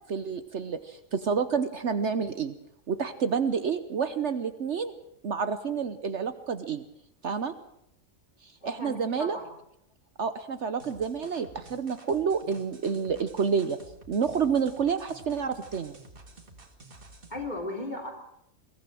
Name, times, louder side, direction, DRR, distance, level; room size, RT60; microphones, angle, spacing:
voice 1, 0.1-2.5 2.9-4.9 5.2-6.8 7.2-7.5 8.6-9.4 10.2-13.8 14.1-16.0, right 6 dB, 60° right, 11 dB, 1.2 m, -29 dB
voice 2, 8.6-9.5 17.3-18.1, left 1 dB, 30° left, 1 dB, 3.9 m, -36 dB
sound 1, 10.8-17.5, right 2 dB, 40° right, 2.3 m, -51 dB
22.5 x 15.5 x 7.6 m, 0.77 s
omnidirectional pair, 1.4 m